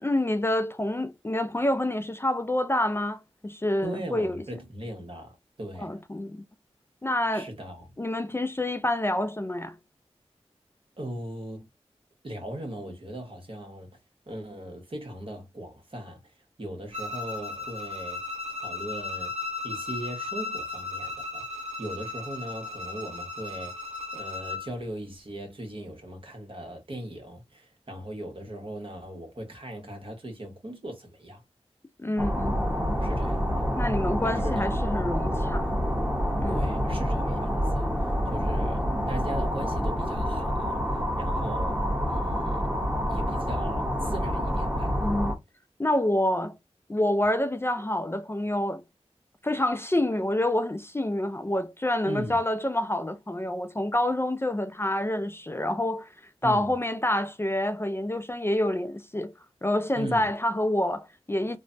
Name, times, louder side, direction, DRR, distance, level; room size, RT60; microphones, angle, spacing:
voice 1, 0.0-4.4 5.8-6.4 7.0-7.5 8.0-9.8 32.0-32.6 33.8-35.7 36.4-36.6 45.0-45.3 45.8-46.5 46.9-48.8 49.4-56.1 56.4-59.3 59.6-61.6, left 1 dB, 20° left, 0.4 m, -27 dB
voice 2, 3.8-6.0 7.3-7.9 11.0-11.7 12.2-13.9 14.3-18.2 18.6-19.3 19.6-23.7 24.1-31.4 33.0-33.6 34.2-34.7 36.5-37.9 38.2-42.7 43.1-45.0 52.1-52.4 56.4-56.7 59.9-60.3, right 1 dB, 55° right, 1.2 m, -39 dB
Bowed string instrument, 16.9-24.7, left 3 dB, 80° right, 0.8 m, -36 dB
sound 1, 32.2-45.3, equal, 15° right, 1.1 m, -27 dB
3.2 x 2.2 x 2.6 m
cardioid pair, 40°, 11 cm